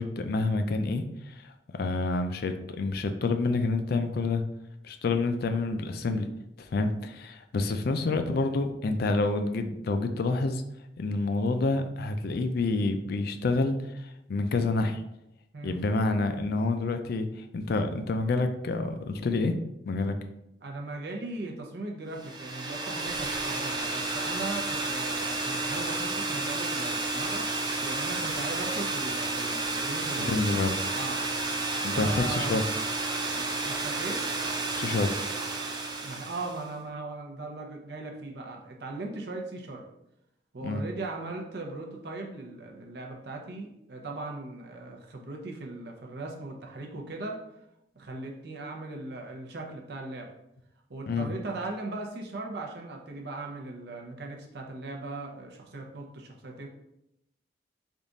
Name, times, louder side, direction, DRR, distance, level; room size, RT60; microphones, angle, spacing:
voice 1, 0.0-1.3 1.8-4.4 4.8-6.3 6.7-10.6 11.0-13.8 14.3-15.0 15.6-17.3 17.5-19.5 19.9-20.2 30.2-30.7 31.8-32.6 34.7-35.1 40.6-40.8 51.1-51.3, left 3 dB, 60° left, 7 dB, 0.4 m, -28 dB
voice 2, 15.5-15.8 20.6-27.5 27.8-30.6 30.9-31.2 31.9-32.6 33.3-34.2 36.0-39.8 40.5-47.4 47.9-50.3 50.9-56.7, right 2 dB, 65° right, 1 dB, 0.7 m, -38 dB
sound 1, 22.2-36.7, right 3 dB, 25° right, 0.5 m, -31 dB
3.6 x 2.4 x 3.9 m, 0.84 s
head